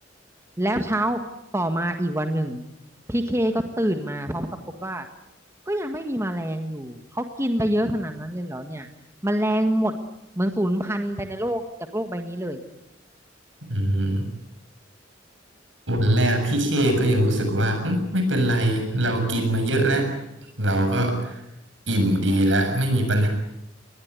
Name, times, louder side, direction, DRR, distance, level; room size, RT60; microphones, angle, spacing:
voice 1, 0.6-1.2 1.5-2.6 3.1-5.1 5.7-8.9 9.2-9.9 10.4-11.6 11.9-12.6, right 1 dB, 15° right, 6 dB, 1.6 m, -26 dB
voice 2, 13.7-14.2 15.9-20.1 20.6-21.4 21.9-23.3, right 1 dB, 85° right, 5 dB, 7.1 m, -22 dB
23.0 x 19.5 x 9.6 m, 0.86 s
head